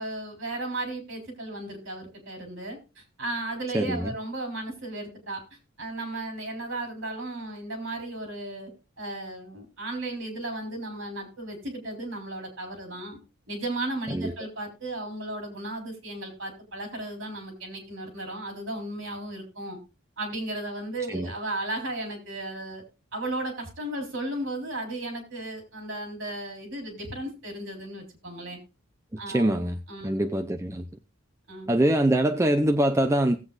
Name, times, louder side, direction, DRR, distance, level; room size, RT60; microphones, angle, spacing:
voice 1, 0.0-5.4 5.8-8.7 9.0-13.2 13.5-19.8 20.2-22.8 23.1-28.6 29.2-29.5 29.9-30.2 31.5-31.7, right 2 dB, 60° right, 3.6 m, -35 dB
voice 2, 3.7-4.1 14.1-14.3 21.1-21.3 29.1-29.8 30.0-30.9 31.7-33.4, right 1 dB, 15° right, 0.5 m, -24 dB
18.0 x 7.9 x 2.4 m
head